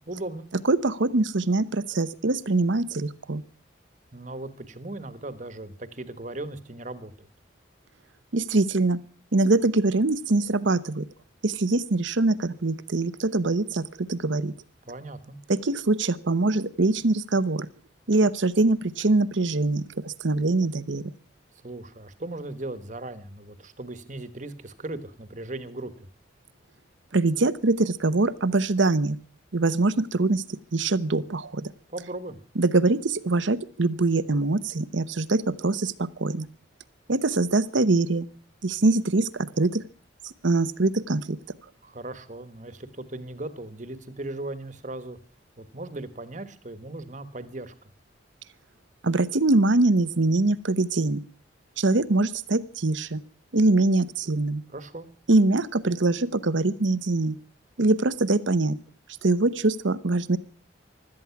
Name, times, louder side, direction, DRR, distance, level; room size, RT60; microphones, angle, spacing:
voice 1, 0.1-0.5 4.1-7.3 14.9-15.4 21.6-25.9 31.9-32.4 41.8-45.2 45.6-47.7 54.7-55.1, right 2 dB, 40° right, 13 dB, 1.4 m, -37 dB
voice 2, 0.6-3.4 8.3-9.0 9.3-11.1 11.4-14.5 15.5-17.7 18.1-21.0 27.1-29.2 29.5-31.7 32.6-36.5 37.1-38.3 38.6-39.8 40.2-41.4 49.0-51.2 51.8-53.2 53.5-54.6 55.3-57.4 57.8-58.8 59.2-60.4, right 2 dB, 70° right, 16 dB, 0.9 m, -23 dB
16.5 x 13.0 x 5.9 m, 0.41 s
head